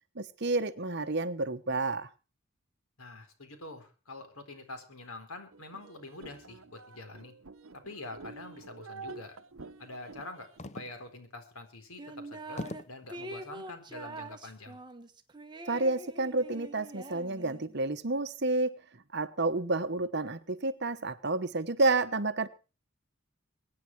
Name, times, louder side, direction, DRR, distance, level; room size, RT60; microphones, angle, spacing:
voice 1, 0.1-2.1 15.7-18.8 19.1-22.5, right 2 dB, 50° right, 1.1 m, -30 dB
voice 2, 3.0-7.3 7.8-9.4 9.8-10.5 10.7-14.8, left 2 dB, 85° left, 4.1 m, -46 dB
sound 1, 5.5-10.6, right 4 dB, 70° right, 0.9 m, -48 dB
sound 2, 10.6-11.2 11.7-11.8 12.6-13.1 13.9-14.3, left 2 dB, 30° left, 0.6 m, -41 dB
sound 3, 12.0-12.8 13.1-17.7, right 2 dB, 20° right, 1.4 m, -44 dB
23.5 x 9.7 x 4.7 m
head